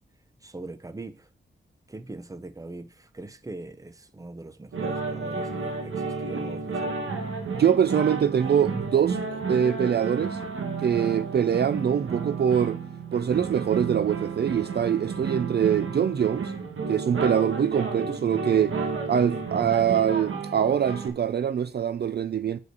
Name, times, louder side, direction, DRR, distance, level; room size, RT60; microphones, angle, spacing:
voice 1, 0.4-1.3 1.9-7.0, right 2 dB, 15° right, 0.7 m, -41 dB
Lamentos En El Aula, 4.7-21.1, right 4 dB, 90° right, 1.5 m, -32 dB
voice 2, 7.5-10.4 10.8-12.8 13.1-16.5 16.9-18.8 19.1-22.6, right 8 dB, 55° right, 0.4 m, -24 dB
6.2 x 4.9 x 6.8 m
wide cardioid pair, 110°, 20 cm